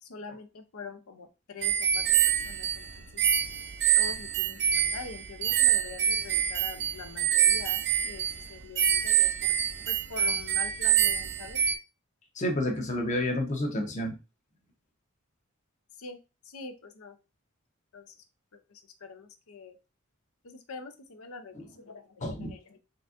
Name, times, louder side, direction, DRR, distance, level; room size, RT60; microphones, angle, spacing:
voice 1, 0.0-3.2 4.0-9.5 9.9-11.6 16.0-16.2 16.4-17.2 17.9-18.1 18.5-19.8 20.4-22.8, left 4 dB, 75° left, 8 dB, 0.7 m, -44 dB
sound 1, 1.6-11.7, right 9 dB, 50° right, 0.4 m, -26 dB
voice 2, 12.4-14.2 22.2-22.5, left 1 dB, 35° left, 4 dB, 0.8 m, -29 dB
3.9 x 3.4 x 2.5 m, 0.28 s
head